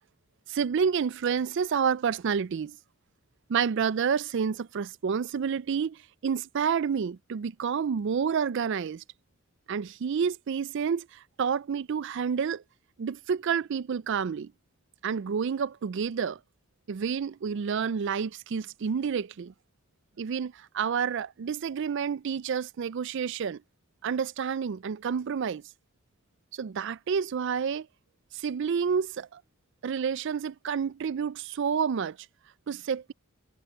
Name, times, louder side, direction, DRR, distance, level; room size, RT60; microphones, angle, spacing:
voice 1, 0.5-2.8 3.5-9.0 9.7-12.6 13.0-14.5 15.0-16.4 16.9-19.5 20.2-23.6 24.0-25.6 26.6-27.9 28.3-29.4 29.8-32.2 32.7-33.1, right 6 dB, 60° right, 0.4 m, -29 dB
head